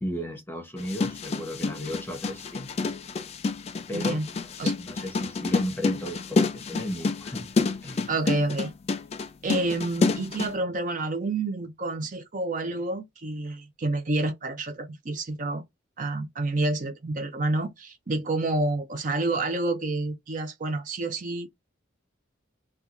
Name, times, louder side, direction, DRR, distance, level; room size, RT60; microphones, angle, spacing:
voice 1, 0.0-2.7 3.9-4.2 4.4-7.5 7.8-8.1, left 1 dB, 10° left, 0.8 m, -34 dB
sound 1, 0.8-10.5, left 3 dB, 30° left, 0.3 m, -28 dB
voice 2, 3.9-4.3 4.6-4.7 8.1-8.7 9.4-15.6 16.0-21.5, right 2 dB, 40° right, 0.5 m, -29 dB
4.3 x 2.3 x 2.4 m
head